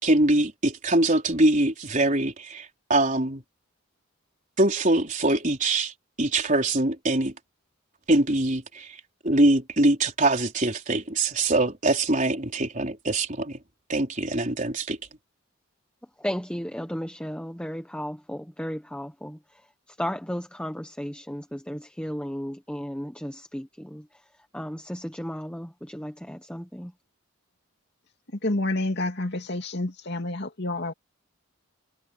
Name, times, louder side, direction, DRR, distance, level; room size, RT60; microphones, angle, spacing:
voice 1, 0.0-3.4 4.6-5.9 6.2-7.3 8.1-9.0 9.2-13.6 13.9-15.0, right 2 dB, 40° right, 4.5 m, -23 dB
voice 2, 16.2-24.1 24.5-26.9, equal, 5° left, 1.2 m, -34 dB
voice 3, 28.4-30.9, left 2 dB, 55° left, 2.7 m, -28 dB
head